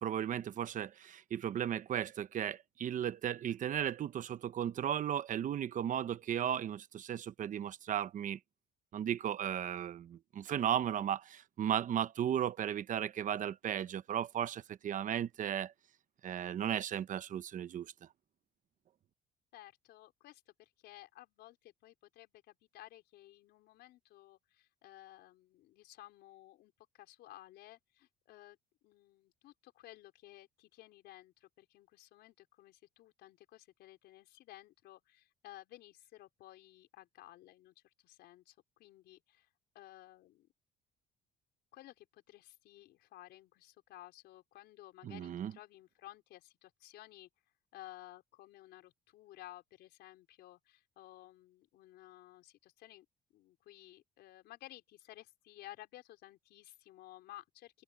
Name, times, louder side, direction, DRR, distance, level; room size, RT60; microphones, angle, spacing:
voice 1, 0.0-8.4 8.9-15.7 16.2-17.9 45.0-45.5, right 9 dB, 50° right, 0.9 m, -35 dB
voice 2, 19.5-28.6 28.8-37.7 38.0-39.5 39.7-40.5 41.7-47.3 47.7-53.1 53.3-57.8, left 15 dB, 80° left, 4.7 m, -55 dB
open air
cardioid pair, 110°, 17 cm